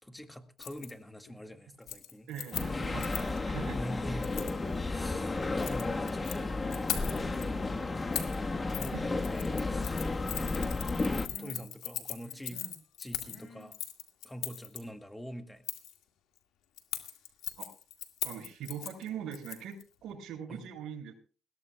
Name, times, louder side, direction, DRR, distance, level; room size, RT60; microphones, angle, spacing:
voice 1, 0.0-2.3 3.8-4.3 4.7-6.6 8.8-10.0 10.6-12.6 13.0-13.8 14.2-15.6 20.5-20.6, equal, 5° left, 7 dB, 2.0 m, -45 dB
Keys jangling, 0.6-0.9 1.3-1.5 1.8-3.4 4.2-4.6 5.4-6.4 6.7-7.4 8.1-8.4 8.7-8.9 9.2-14.8 15.7-16.0 16.8-19.8 20.1-20.2, left 11 dB, 90° left, 2.0 m, -39 dB
voice 2, 2.3-3.8 8.9-9.0 17.6-17.7 18.2-21.1, right 8 dB, 80° right, -5 dB, 5.9 m, -41 dB
sound 1, 2.5-11.3, left 3 dB, 25° left, 1.5 m, -33 dB
Human voice, 6.2-6.9 7.2-7.7 8.2-8.9 9.2-10.0 10.2-10.9 11.2-11.6 12.2-12.8 13.3-13.7, left 2 dB, 65° left, 6.3 m, -51 dB
21.5 x 17.0 x 2.4 m, 0.36 s
cardioid pair, 90°, 0 cm